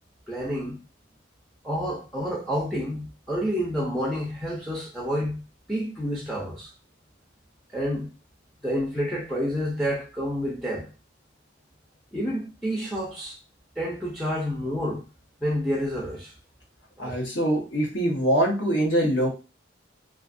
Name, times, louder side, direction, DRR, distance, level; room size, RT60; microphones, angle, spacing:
voice 1, 0.3-0.8 1.6-6.7 7.7-8.1 8.6-10.9 12.1-13.4 13.8-15.0 15.4-16.3 17.0-17.2, equal, ahead, 0.6 m, -29 dB
voice 2, 17.0-19.3, right 1 dB, 65° left, 0.9 m, -23 dB
2.4 x 2.4 x 2.5 m
head